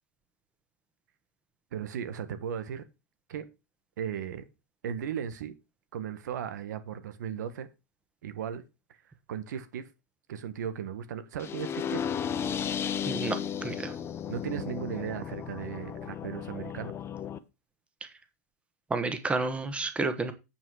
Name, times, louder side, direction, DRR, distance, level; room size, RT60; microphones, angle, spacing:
voice 1, 1.7-2.8 3.3-3.4 4.0-4.4 4.8-5.5 5.9-7.7 8.2-8.6 8.9-9.0 9.3-9.9 10.3-12.1 14.3-17.0, right 8 dB, 75° right, 1.4 m, -36 dB
sound 1, 11.4-17.4, left 8 dB, 25° left, 0.8 m, -34 dB
voice 2, 13.1-13.9 18.9-20.3, right 3 dB, 10° right, 1.3 m, -30 dB
8.9 x 5.6 x 4.8 m
hypercardioid pair, 115°, 10 cm